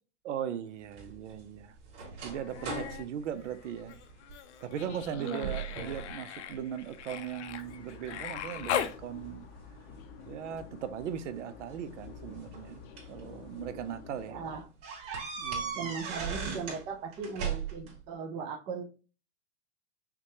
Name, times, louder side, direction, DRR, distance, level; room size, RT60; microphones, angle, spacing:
voice 1, 0.2-1.8 2.2-4.0 4.6-9.4 10.2-12.8 13.1-14.4 15.4-15.9, right 9 dB, 80° right, 0.7 m, -38 dB
sound 1, 0.9-4.4 4.8-5.1 5.4-6.1 6.5-7.3 7.9-9.3 10.5-10.6 11.8-13.2 13.7-13.9 14.2-14.3 14.8-16.8 17.1-17.9, right 6 dB, 35° right, 2.2 m, -38 dB
Human voice, 2.3-3.1 3.4-9.0 10.6-10.7, left 9 dB, 70° left, 0.7 m, -39 dB
voice 2, 5.2-5.5 14.3-14.7 15.8-18.8, right 5 dB, 15° right, 0.3 m, -38 dB
sound 2, 7.5-14.6, left 6 dB, 30° left, 0.6 m, -49 dB
5.8 x 2.3 x 2.9 m
supercardioid pair, 150°, 36 cm